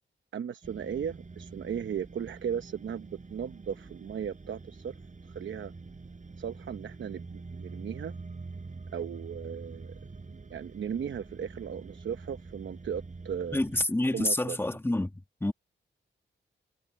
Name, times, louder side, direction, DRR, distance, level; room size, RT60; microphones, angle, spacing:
voice 1, 0.3-4.9 5.2-5.7 6.4-8.1 8.9-9.9 10.3-13.6 14.1-14.6, right 8 dB, 70° right, 0.9 m, -36 dB
sound 1, 0.6-13.9, right 4 dB, 40° right, 5.9 m, -45 dB
voice 2, 13.5-15.5, left 1 dB, 10° left, 1.5 m, -28 dB
cardioid pair, 75°, 20 cm